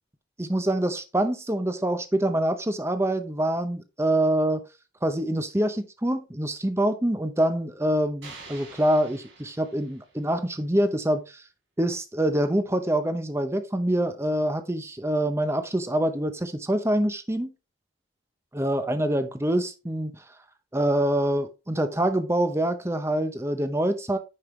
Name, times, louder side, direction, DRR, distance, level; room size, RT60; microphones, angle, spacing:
voice 1, 0.4-4.6 5.0-11.4 11.8-17.5 18.5-20.2 20.7-24.2, right 1 dB, 15° right, 0.7 m, -25 dB
sound 1, 8.2-10.4, right 3 dB, 70° right, 3.4 m, -47 dB
9.6 x 5.4 x 3.1 m
head